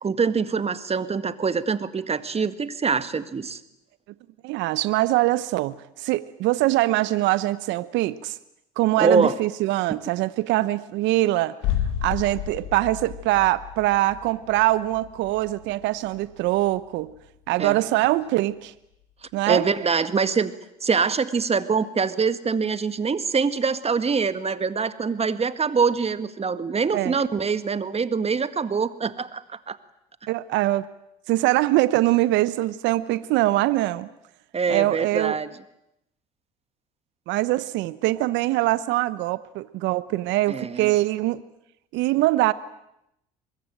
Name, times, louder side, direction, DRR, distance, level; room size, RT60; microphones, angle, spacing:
voice 1, 0.0-3.6 9.0-9.4 9.9-10.0 17.6-17.8 19.5-20.5 20.8-29.8 34.5-35.5 40.5-40.9, right 5 dB, 30° right, 12 dB, 1.9 m, -24 dB
voice 2, 4.4-8.4 8.8-11.6 12.0-17.1 17.5-18.7 19.3-19.7 26.9-27.2 30.3-30.9 31.3-34.1 34.7-35.4 37.3-41.4 41.9-42.5, right 17 dB, 70° right, 17 dB, 0.9 m, -23 dB
sound 1, 11.6-17.4 17.6-17.7, left 11 dB, 75° left, 2.0 m, -32 dB
24.0 x 21.5 x 9.0 m, 0.83 s
hypercardioid pair, 65°, 20 cm